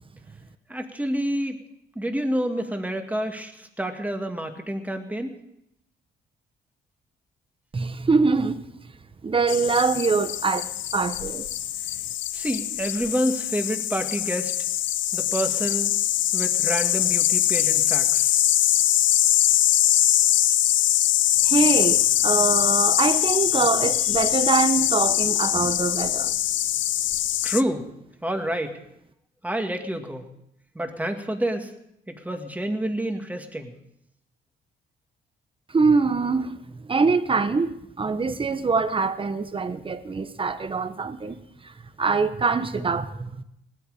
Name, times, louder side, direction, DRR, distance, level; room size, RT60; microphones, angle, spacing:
voice 1, 0.7-1.6 2.0-5.3 12.3-14.5 15.1-15.9 16.3-18.4 27.4-27.9 28.2-28.8 29.4-30.2 30.8-31.7 32.1-33.7, right 1 dB, 10° right, 2.0 m, -28 dB
voice 2, 7.7-8.6 9.2-11.5 21.4-26.3 35.7-43.4, right 4 dB, 25° right, 1.0 m, -24 dB
sound 1, 9.5-27.6, left 13 dB, 70° left, 0.6 m, -22 dB
18.5 x 12.5 x 5.0 m
cardioid pair, 90°, 20 cm